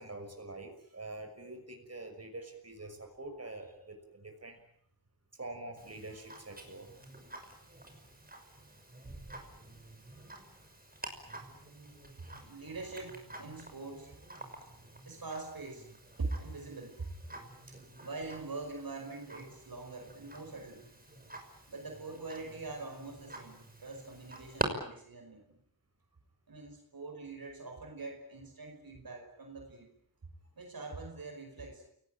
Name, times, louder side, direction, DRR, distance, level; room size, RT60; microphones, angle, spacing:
voice 1, 0.0-4.6 5.4-6.9, right 2 dB, 45° right, 5 dB, 6.2 m, -45 dB
Tick-tock, 5.8-24.7, right 2 dB, 25° right, 6.0 m, -47 dB
voice 2, 12.2-14.4 15.0-15.9 16.2-17.3 17.7-20.9 21.7-25.6 26.5-29.9 30.6-31.8, right 3 dB, 75° right, 4 dB, 5.3 m, -43 dB
29.0 x 19.0 x 9.0 m, 0.70 s
wide cardioid pair, 70°, 36 cm